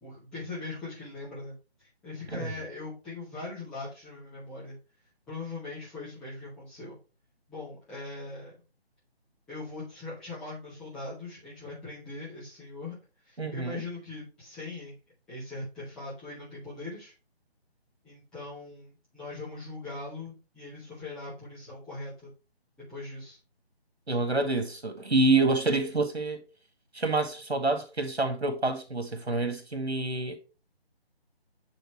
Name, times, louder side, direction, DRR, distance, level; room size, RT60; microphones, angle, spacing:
voice 1, 0.0-4.8 5.3-7.0 7.5-8.6 9.5-12.9 13.2-15.0 15.3-17.1 18.0-22.3 22.9-23.4, left 3 dB, ahead, 0.8 m, -41 dB
voice 2, 13.4-13.8 24.1-26.4 26.9-30.4, right 2 dB, 80° right, 2.1 m, -27 dB
9.1 x 4.1 x 3.1 m
figure-of-eight pair, 150°, 32 cm